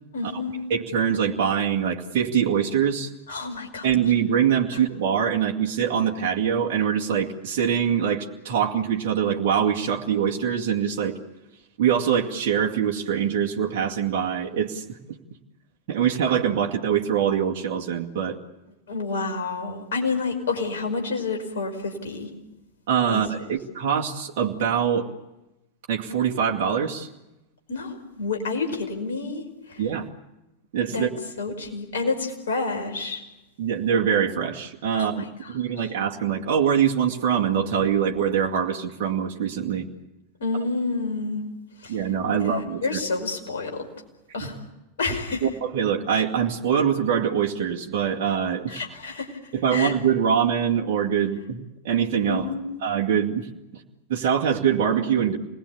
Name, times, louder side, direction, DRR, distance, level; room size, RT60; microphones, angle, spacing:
voice 1, 0.1-0.6 3.3-3.9 4.7-4.8 18.9-22.3 23.1-23.5 27.7-29.8 30.9-31.1 31.4-33.2 34.9-35.9 40.4-41.4 41.8-42.0 42.4-43.8 44.3-44.6 45.0-45.5 48.7-49.3 49.7-49.9 52.3-52.8, left 3 dB, 65° left, 4 dB, 5.3 m, -29 dB
voice 2, 0.7-3.1 3.8-11.2 11.8-14.8 15.9-18.4 22.9-25.1 25.9-27.1 29.8-30.1 30.7-31.1 33.6-39.9 41.9-43.0 44.4-44.5 45.4-48.8 49.5-52.5 52.8-53.5 54.1-55.4, right 8 dB, 50° right, -1 dB, 2.2 m, -24 dB
28.0 x 20.5 x 8.5 m, 0.96 s
figure-of-eight pair, 90°, 0 cm